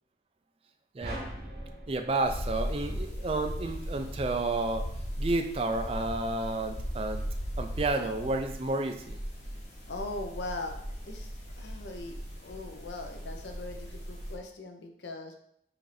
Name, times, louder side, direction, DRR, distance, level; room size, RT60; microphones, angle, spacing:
sound 1, 1.0-3.4, right 1 dB, 60° right, 1.0 m, -42 dB
voice 1, 1.9-4.9 5.2-7.2 7.6-9.2, right 2 dB, 30° right, 6 dB, 0.4 m, -31 dB
sound 2, 2.2-14.3, equal, 40° left, 1.1 m, -38 dB
voice 2, 9.9-10.7 11.1-11.3 11.6-12.2 12.4-15.3, left 2 dB, 85° left, 4 dB, 0.7 m, -40 dB
5.7 x 2.7 x 3.3 m, 0.73 s
head